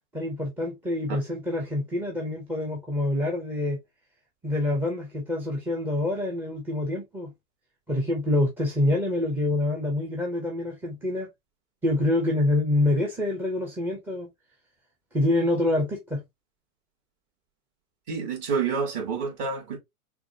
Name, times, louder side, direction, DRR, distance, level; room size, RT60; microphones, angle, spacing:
voice 1, 0.1-3.8 4.4-7.3 7.9-11.3 11.8-14.3 15.1-16.2, left 1 dB, 5° right, 0.6 m, -26 dB
voice 2, 18.1-19.8, right 5 dB, 35° right, 2.2 m, -28 dB
6.0 x 2.5 x 2.7 m
hypercardioid pair, 120°, 46 cm